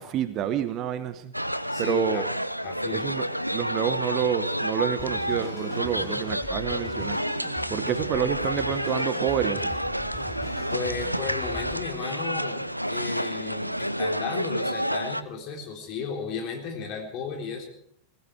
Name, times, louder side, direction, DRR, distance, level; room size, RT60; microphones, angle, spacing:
voice 1, 0.0-1.3 1.8-2.3 2.9-7.2 7.7-9.7, right 9 dB, 35° right, 12 dB, 1.0 m, -28 dB
sound 1, 1.3-15.2, equal, 90° right, 0.6 m, -30 dB
voice 2, 1.7-2.2 2.6-3.1 10.7-17.7, left 5 dB, 40° left, 3 dB, 3.7 m, -34 dB
sound 2, 5.0-11.8, left 1 dB, 15° left, 3.5 m, -41 dB
20.0 x 15.0 x 4.6 m, 0.69 s
figure-of-eight pair, 90°, 0 cm